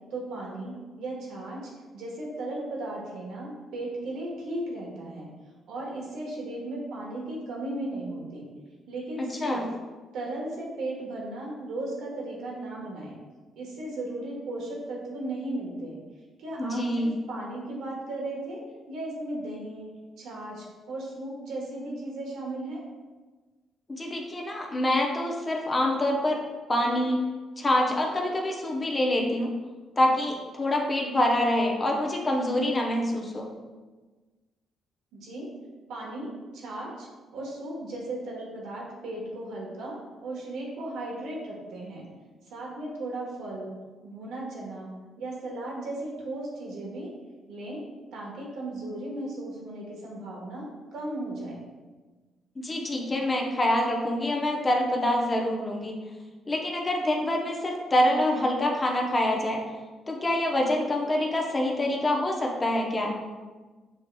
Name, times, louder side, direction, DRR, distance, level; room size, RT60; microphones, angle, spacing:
voice 1, 0.1-5.3 5.7-8.5 8.9-9.6 10.1-13.2 13.6-16.0 16.4-18.6 18.9-19.9 20.2-22.8 35.1-35.5 35.9-40.0 40.2-42.1 42.4-43.7 44.0-44.9 45.2-47.1 47.5-47.8 48.1-51.7, right 2 dB, 85° right, -3 dB, 1.1 m, -36 dB
voice 2, 16.6-17.1 23.9-26.4 26.7-27.2 27.6-29.5 30.0-33.5 52.6-56.0 56.5-59.6 60.1-63.2, left 1 dB, 25° left, -1 dB, 0.6 m, -26 dB
6.2 x 2.9 x 2.2 m, 1.3 s
cardioid pair, 90°, 0 cm